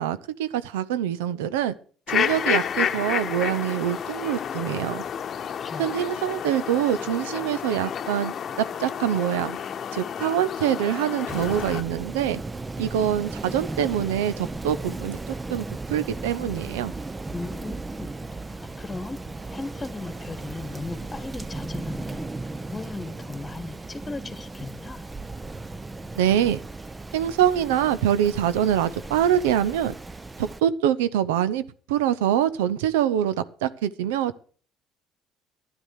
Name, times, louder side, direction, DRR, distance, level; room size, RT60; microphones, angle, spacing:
voice 1, 0.0-1.7 2.1-5.0 5.8-8.3 8.8-9.6 9.9-12.4 12.8-16.9 26.2-26.6 27.1-29.9 30.4-31.6 31.9-34.4, right 10 dB, 85° right, 0.8 m, -24 dB
sound 1, 2.1-11.8, left 8 dB, 50° left, 1.0 m, -30 dB
voice 2, 5.6-6.1 17.3-18.1 18.6-19.2 19.5-22.2 22.7-25.0, left 3 dB, 25° left, 1.6 m, -37 dB
Rain, 11.3-30.6, right 3 dB, 20° right, 0.7 m, -36 dB
12.0 x 10.0 x 6.5 m
hypercardioid pair, 65°, 0 cm